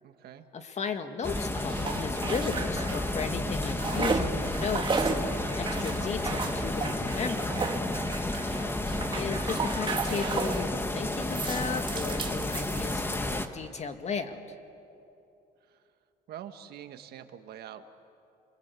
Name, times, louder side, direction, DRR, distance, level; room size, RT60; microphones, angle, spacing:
voice 1, 0.0-0.5 8.9-9.1 15.6-15.9 16.3-17.8, right 10 dB, 70° right, 8 dB, 1.6 m, -45 dB
voice 2, 0.5-7.6 9.1-14.4, left 5 dB, 40° left, 7 dB, 2.0 m, -35 dB
sound 1, 1.2-13.5, left 1 dB, 15° left, 1.5 m, -31 dB
sound 2, 1.3-3.2 3.5-10.7 11.2-13.2, right 4 dB, 30° right, 2.0 m, -34 dB
29.5 x 22.0 x 8.4 m, 2.7 s
cardioid pair, 110°, 17 cm